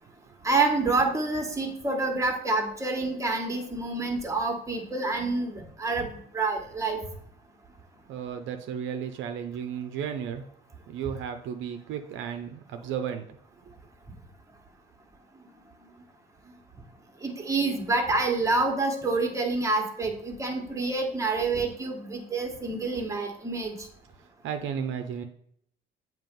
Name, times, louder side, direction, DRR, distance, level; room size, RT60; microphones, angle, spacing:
voice 1, 0.4-7.0 17.2-23.9, right 3 dB, 15° right, 2 dB, 1.3 m, -27 dB
voice 2, 8.1-10.5 10.9-13.3 13.6-13.7 24.4-25.2, right 8 dB, 70° right, 7 dB, 0.6 m, -34 dB
7.4 x 3.0 x 5.2 m, 0.68 s
cardioid pair, 100°, 20 cm